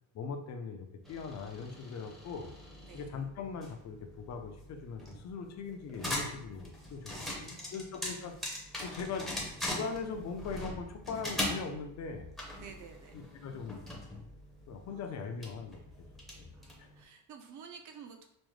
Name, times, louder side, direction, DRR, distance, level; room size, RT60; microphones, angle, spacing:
voice 1, 0.1-2.5 2.9-8.3 8.8-12.3 13.1-14.0 14.7-15.8 16.4-16.5 16.8-16.9, left 5 dB, 40° left, 5 dB, 0.5 m, -41 dB
sound 1, 1.0-17.0, left 1 dB, ahead, 0.6 m, -42 dB
voice 2, 2.8-3.2 7.1-8.2 12.6-13.2 14.9-15.4 16.5-18.3, right 6 dB, 45° right, 4 dB, 0.6 m, -52 dB
5.1 x 2.1 x 3.1 m, 0.75 s
cardioid pair, 160°, 41 cm